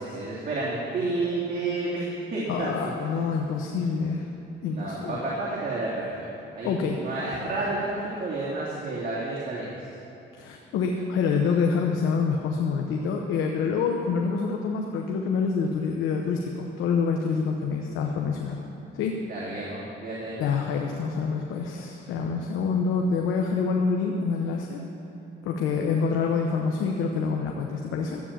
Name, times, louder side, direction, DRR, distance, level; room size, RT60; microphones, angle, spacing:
voice 1, 0.0-2.9 4.7-6.1 6.5-9.7 19.3-20.4, right 2 dB, 45° right, -7 dB, 2.9 m, -30 dB
voice 2, 2.5-4.3 4.6-5.2 6.6-7.0 10.3-18.6 18.9-19.2 20.4-24.8 25.4-28.2, left 5 dB, 85° left, 2 dB, 1.0 m, -26 dB
13.0 x 8.4 x 7.3 m, 2.9 s
cardioid pair, 90°, 20 cm